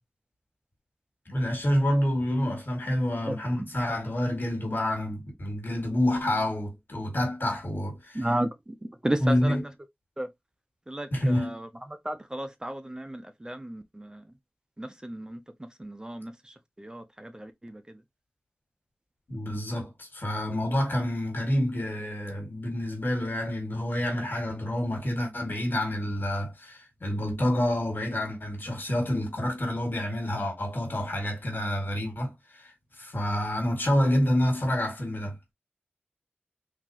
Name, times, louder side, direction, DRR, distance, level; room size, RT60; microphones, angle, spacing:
voice 1, 1.3-8.4 9.2-9.6 11.1-11.6 19.3-32.7 33.0-35.3, left 1 dB, 55° left, 2.0 m, -28 dB
voice 2, 8.2-8.5 9.0-9.5 10.2-10.3 10.9-11.7 12.0-14.2 14.8-15.4 15.8-16.3 16.8-17.8, right 1 dB, 20° right, 0.5 m, -33 dB
3.8 x 2.8 x 2.8 m
wide cardioid pair, 55°, 4 cm